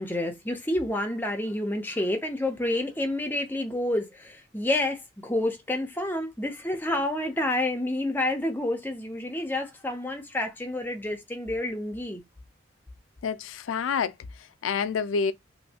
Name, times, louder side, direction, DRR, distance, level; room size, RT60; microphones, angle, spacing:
voice 1, 0.0-12.2, left 1 dB, 10° left, 0.5 m, -29 dB
voice 2, 13.2-15.3, left 6 dB, 80° left, 0.3 m, -28 dB
3.1 x 2.6 x 2.7 m
head